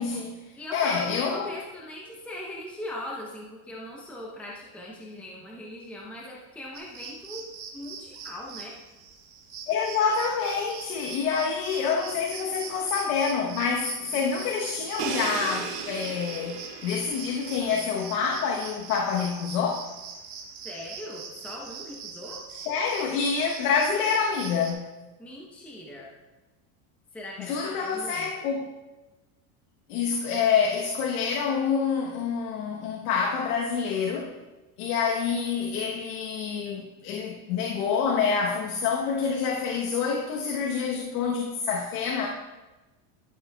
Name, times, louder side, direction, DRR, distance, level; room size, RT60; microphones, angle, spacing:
voice 1, 0.0-0.4 0.7-1.5 9.7-19.9 22.7-24.9 27.4-28.7 29.9-34.3 34.8-42.3, left 6 dB, 80° left, 0 dB, 1.2 m, -27 dB
voice 2, 0.6-8.8 20.6-22.4 25.2-26.1 27.1-28.3, left 1 dB, 5° left, -3 dB, 0.8 m, -40 dB
sound 1, 6.7-24.7, right 6 dB, 30° right, 1.4 m, -43 dB
Crash cymbal, 15.0-18.8, right 6 dB, 90° right, 1.8 m, -37 dB
12.5 x 7.2 x 2.3 m, 1.1 s
supercardioid pair, 150°, 45 cm